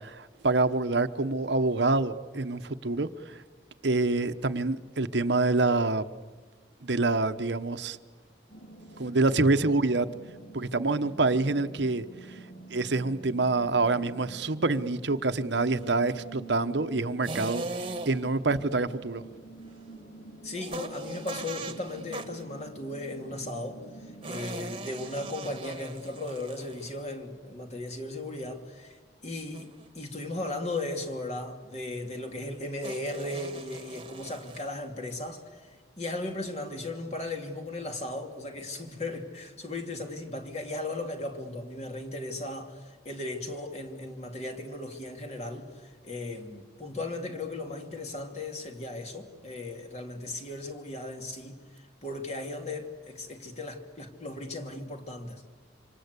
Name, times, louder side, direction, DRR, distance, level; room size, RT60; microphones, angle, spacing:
voice 1, 0.0-3.4 3.8-6.0 6.8-8.0 9.0-10.1 10.5-12.4 12.7-17.6 18.0-19.2, right 3 dB, 75° right, 1.0 m, -26 dB
sound 1, 8.5-25.6, right 3 dB, 55° left, 3.3 m, -48 dB
sound 2, 17.2-18.4 20.6-22.4 24.2-27.1 29.5-29.9 32.8-34.7, right 3 dB, 30° right, 1.5 m, -40 dB
voice 2, 20.4-55.5, left 2 dB, 35° left, 2.8 m, -37 dB
26.5 x 26.0 x 8.3 m
head